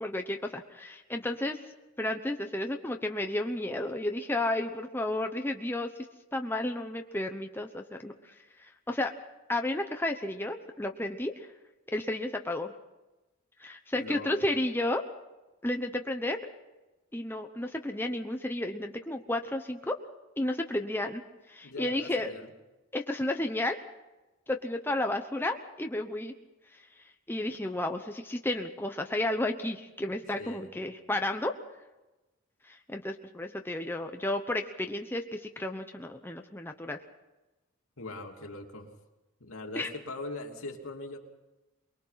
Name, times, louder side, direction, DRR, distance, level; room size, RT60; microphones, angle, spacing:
voice 1, 0.0-1.6 2.0-5.9 6.3-9.1 9.5-11.5 11.9-12.7 13.6-15.0 15.6-16.4 17.1-20.0 20.4-21.2 21.5-22.3 22.9-23.8 24.5-26.3 26.7-26.9 27.3-31.5 32.6-37.0 39.7-39.9, left 1 dB, 10° left, 4 dB, 0.9 m, -32 dB
voice 2, 14.0-14.4 21.6-22.5 30.4-30.7 38.0-38.9 39.4-41.2, left 2 dB, 75° left, 2 dB, 2.8 m, -41 dB
23.5 x 21.5 x 5.8 m, 1.1 s
head